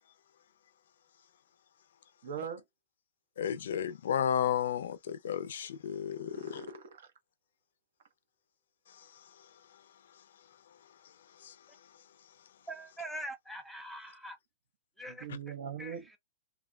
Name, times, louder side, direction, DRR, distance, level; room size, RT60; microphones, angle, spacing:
voice 1, 2.2-2.6 6.3-7.1 15.1-16.1, right 8 dB, 70° right, 0.9 m, -41 dB
voice 2, 3.4-6.6, left 9 dB, 75° left, 0.5 m, -32 dB
voice 3, 12.7-14.4 15.0-15.3 15.8-16.2, right 1 dB, ahead, 0.5 m, -43 dB
2.9 x 2.2 x 2.3 m
supercardioid pair, 170°, 0 cm